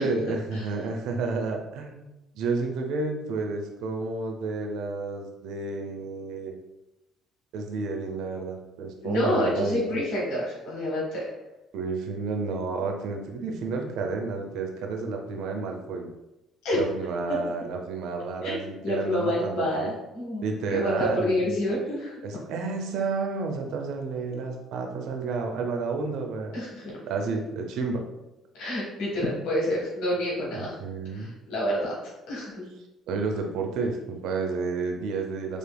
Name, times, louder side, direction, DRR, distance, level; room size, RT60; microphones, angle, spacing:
voice 1, 0.0-2.1 2.3-6.5 7.5-10.0 11.7-16.1 16.7-19.9 20.4-21.4 22.2-26.5 27.1-28.0 30.5-31.3 33.1-35.6, right 4 dB, 70° right, 3 dB, 0.7 m, -31 dB
voice 2, 9.0-11.3 16.6-16.9 18.4-18.6 18.8-22.1 26.5-27.0 28.5-30.7 31.1-32.7, left 1 dB, 70° left, -5 dB, 1.4 m, -28 dB
5.0 x 3.3 x 2.3 m, 0.94 s
hypercardioid pair, 50°, 0 cm